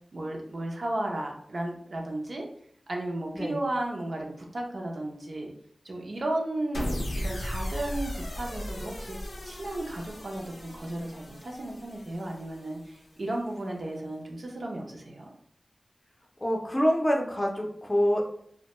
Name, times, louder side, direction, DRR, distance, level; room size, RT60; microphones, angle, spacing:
voice 1, 0.1-2.5 2.9-5.5 5.8-9.2 9.4-15.3, right 1 dB, 65° right, 0 dB, 0.5 m, -34 dB
sound 1, 6.7-13.1, equal, 80° left, 0.5 m, -36 dB
voice 2, 16.4-18.2, equal, 20° left, 0 dB, 0.5 m, -26 dB
2.2 x 2.1 x 2.8 m, 0.66 s
wide cardioid pair, 60°, 0 cm